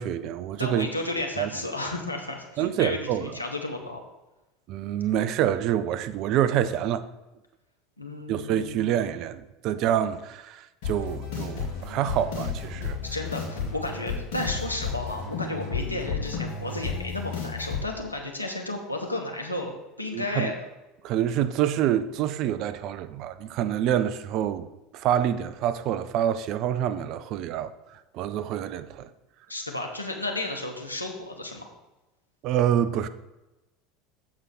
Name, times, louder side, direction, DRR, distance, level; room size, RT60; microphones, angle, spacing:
voice 1, 0.0-0.9 1.4-1.5 2.6-3.3 4.7-7.1 8.3-13.0 20.1-20.5 21.0-24.7 24.9-29.1 32.4-33.1, right 10 dB, 50° right, 0.5 m, -27 dB
voice 2, 0.6-4.0 8.0-8.8 13.0-20.5 29.5-31.7, left 2 dB, 90° left, 1.1 m, -33 dB
sound 1, 10.8-17.8, left 5 dB, 60° left, 2.6 m, -32 dB
7.6 x 4.8 x 6.1 m
figure-of-eight pair, 75°, 0 cm